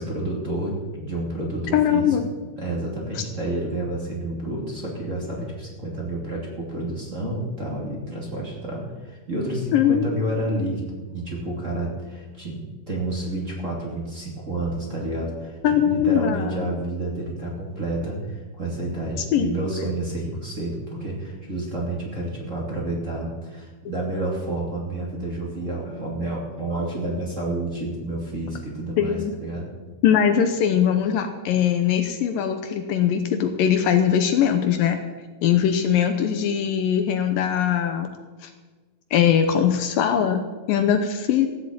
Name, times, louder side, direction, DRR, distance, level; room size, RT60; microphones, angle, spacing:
voice 1, 0.0-2.1 2.6-12.6 12.9-15.6 15.8-29.7, right 1 dB, 20° right, -3 dB, 2.5 m, -29 dB
voice 2, 1.7-2.3 9.7-10.1 15.6-16.7 19.3-19.5 29.0-29.3 30.0-35.0 35.4-38.1 38.4-38.5 39.1-40.4 40.7-41.5, left 9 dB, 75° left, 7 dB, 2.4 m, -21 dB
15.5 x 8.1 x 8.6 m, 1.3 s
omnidirectional pair, 4.3 m